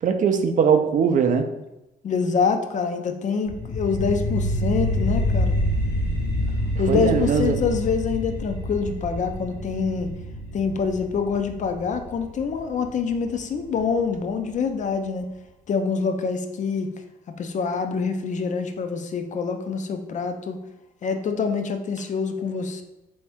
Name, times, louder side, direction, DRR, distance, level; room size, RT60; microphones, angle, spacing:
voice 1, 0.0-1.5 6.9-7.6, right 6 dB, 45° right, 8 dB, 0.5 m, -20 dB
voice 2, 2.0-5.6 6.8-10.1 10.5-15.3 15.7-16.9 17.4-20.6 21.0-22.8, left 5 dB, 45° left, 6 dB, 0.5 m, -25 dB
sound 1, 3.5-14.5, equal, 75° left, 1.0 m, -27 dB
3.3 x 2.7 x 3.4 m, 0.94 s
cardioid pair, 80°, 18 cm